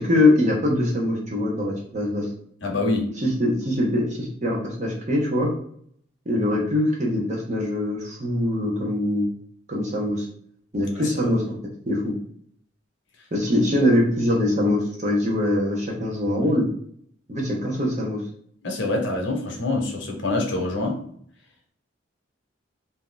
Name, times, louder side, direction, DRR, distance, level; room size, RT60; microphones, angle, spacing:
voice 1, 0.0-2.3 3.2-5.5 6.3-9.3 9.7-10.3 10.7-11.6 11.9-12.1 13.3-16.7 17.3-18.2, left 1 dB, 35° right, -3 dB, 0.8 m, -23 dB
voice 2, 2.6-3.1 10.9-11.3 18.6-21.0, left 2 dB, 60° left, 1 dB, 0.9 m, -26 dB
2.8 x 2.4 x 3.7 m, 0.62 s
head